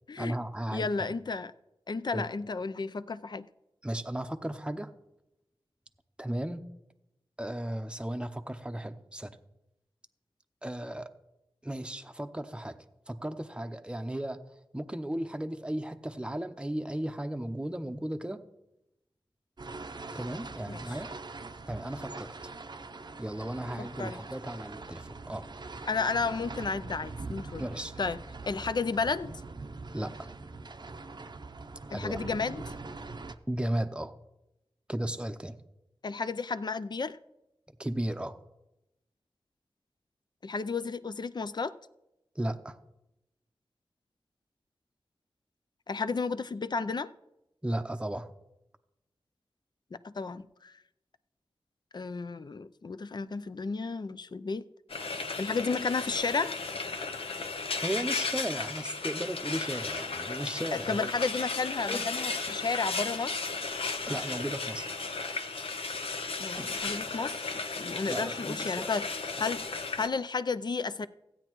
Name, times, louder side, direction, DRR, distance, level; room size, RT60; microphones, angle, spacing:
voice 1, 0.2-1.1 2.1-2.3 3.8-4.9 6.2-6.7 7.4-9.4 10.6-11.1 11.6-14.4 14.7-18.4 20.1-21.1 21.7-22.5 23.2-25.5 27.6-27.9 28.6-28.7 29.9-30.3 31.9-32.2 33.5-34.2 34.9-35.6 37.8-38.4 42.3-42.8 47.6-48.3 57.8-61.1 64.1-64.9 68.1-68.9, right 1 dB, 10° right, 0.7 m, -35 dB
voice 2, 0.7-1.5 1.9-3.5 20.7-20.8 23.8-24.2 25.9-27.6 28.0-28.2 28.5-29.3 31.9-32.7 36.0-37.2 40.4-41.7 45.9-47.1 50.0-50.7 51.9-54.7 55.4-56.5 60.7-63.4 66.4-69.1 69.4-69.7 70.0-71.1, left 4 dB, 50° left, 0.5 m, -32 dB
sound 1, 19.6-33.4, right 3 dB, 50° right, 0.6 m, -43 dB
Frying (food), 54.9-70.1, left 4 dB, 85° left, 0.7 m, -35 dB
sound 2, 61.5-61.6 61.8-62.8 64.1-65.1 66.5-67.3, left 2 dB, 20° left, 1.0 m, -44 dB
15.5 x 8.9 x 3.1 m
wide cardioid pair, 55°, 9 cm